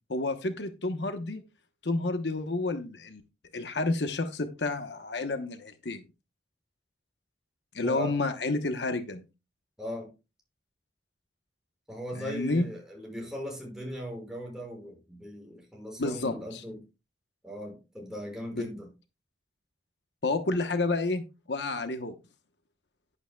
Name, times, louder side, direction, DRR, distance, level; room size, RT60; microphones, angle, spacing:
voice 1, 0.1-1.4 1.8-3.2 3.5-6.0 7.7-9.2 12.2-12.7 16.0-16.6 18.5-18.6 20.2-21.2 21.5-22.1, left 2 dB, 75° left, 8 dB, 1.1 m, -30 dB
voice 2, 7.8-8.2 9.8-10.1 11.9-16.8 17.4-18.9, equal, 5° right, -1 dB, 5.9 m, -39 dB
11.0 x 11.0 x 2.3 m, 0.27 s
head